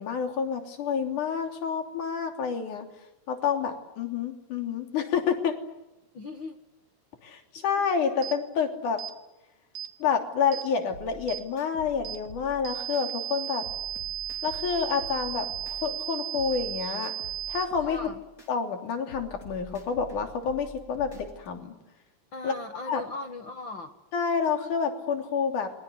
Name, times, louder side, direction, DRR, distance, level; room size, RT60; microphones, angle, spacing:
voice 1, 0.0-2.9 3.3-5.6 7.2-9.0 10.0-13.7 14.4-17.1 17.5-18.1 18.5-21.7 22.4-22.5 22.9-23.0 24.1-25.7, left 6 dB, 50° left, 5 dB, 4.3 m, -28 dB
voice 2, 6.1-6.6 7.5-7.6 17.8-18.2 22.3-23.9, left 2 dB, 70° left, 6 dB, 1.1 m, -38 dB
sound 1, 8.2-8.4 9.0-9.1 9.7-9.9 10.5-10.7 11.3-11.4 12.0-12.2 12.6-17.6, right 12 dB, 60° right, 2.6 m, -35 dB
sound 2, 10.9-13.0 13.4-16.0 16.3-18.5 18.9-21.5, right 2 dB, 20° left, 4.8 m, -47 dB
29.0 x 23.0 x 8.1 m, 0.97 s
omnidirectional pair, 4.7 m